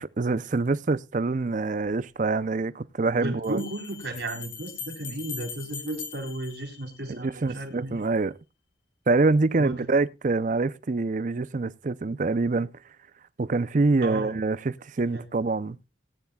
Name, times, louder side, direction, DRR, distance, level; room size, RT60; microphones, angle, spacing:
voice 1, 0.0-3.6 7.1-8.3 9.1-12.7 13.4-15.8, right 3 dB, 45° right, 0.5 m, -25 dB
Bell, 1.8-1.9 3.4-7.4, left 6 dB, 90° left, 3.7 m, -41 dB
voice 2, 3.2-8.0 9.6-9.9 14.0-14.3 15.1-15.2, right 1 dB, 70° right, 3.2 m, -34 dB
18.5 x 9.6 x 2.3 m
head